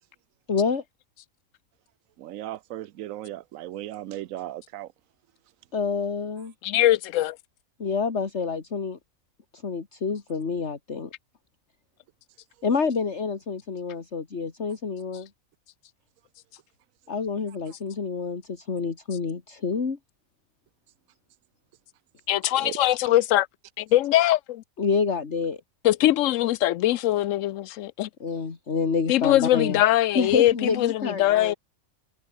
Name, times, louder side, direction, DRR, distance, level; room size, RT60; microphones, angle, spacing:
voice 1, 0.5-0.8 5.7-6.5 7.8-9.0 9.5-11.1 12.6-15.3 17.1-20.0 24.8-25.6 28.2-29.8 30.1-31.6, left 5 dB, 50° left, 2.3 m, -28 dB
voice 2, 2.2-4.9 22.6-22.7, right 13 dB, 75° right, 1.0 m, -36 dB
voice 3, 6.6-7.4 22.3-23.5 23.8-24.6 25.8-28.1 29.1-31.5, left 14 dB, 70° left, 0.9 m, -22 dB
omnidirectional pair, 1.5 m